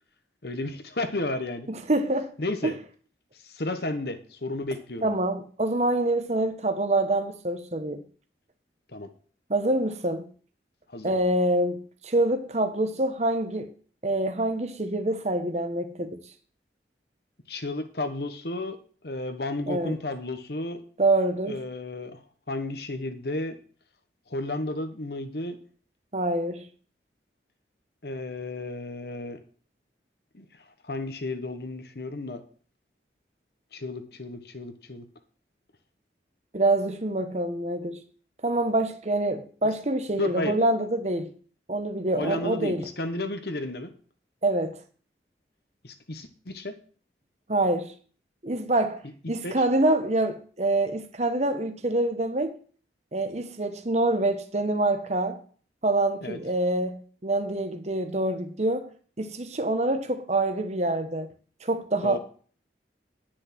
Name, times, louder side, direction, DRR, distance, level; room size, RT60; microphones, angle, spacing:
voice 1, 0.4-1.7 2.4-2.8 3.5-5.1 8.9-9.1 10.9-11.2 17.5-18.8 19.0-20.8 21.5-22.2 22.5-23.6 24.3-25.6 28.0-29.4 30.3-30.4 30.8-32.4 33.7-35.1 40.2-40.5 42.2-43.9 45.8-46.8 49.4-49.5 56.2-56.4 62.0-62.2, left 2 dB, 60° left, 1.2 m, -32 dB
voice 2, 1.7-2.3 2.6-2.7 5.0-8.0 9.5-10.3 11.0-13.7 14.0-16.2 19.7-20.0 21.0-21.6 26.1-26.6 36.5-38.0 38.4-41.3 41.7-42.8 44.4-44.8 47.5-47.9 48.4-49.0 49.3-52.6 53.1-55.4 55.8-58.9 59.2-61.3 61.6-62.2, right 2 dB, 40° right, 1.1 m, -26 dB
10.0 x 6.4 x 6.0 m
head